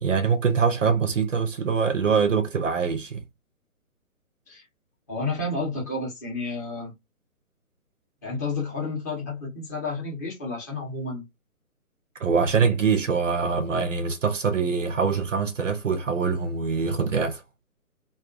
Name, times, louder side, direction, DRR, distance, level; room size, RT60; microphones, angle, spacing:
voice 1, 0.0-3.2 12.2-17.4, right 5 dB, 55° right, 0.6 m, -24 dB
voice 2, 5.1-6.9 8.2-11.2, left 3 dB, 10° left, 0.6 m, -31 dB
2.4 x 2.2 x 2.4 m
figure-of-eight pair, 140°, 44 cm